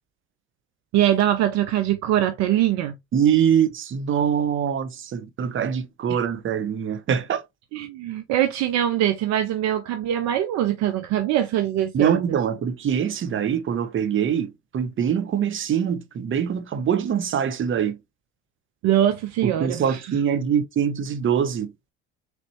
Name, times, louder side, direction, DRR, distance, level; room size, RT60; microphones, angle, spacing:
voice 1, 0.9-2.9 6.1-6.2 7.7-12.4 18.8-20.2, right 12 dB, 60° right, 0.6 m, -23 dB
voice 2, 3.1-7.4 11.9-18.0 19.4-21.7, right 8 dB, 40° right, 0.9 m, -23 dB
3.9 x 3.3 x 3.0 m
hypercardioid pair, 65°, 32 cm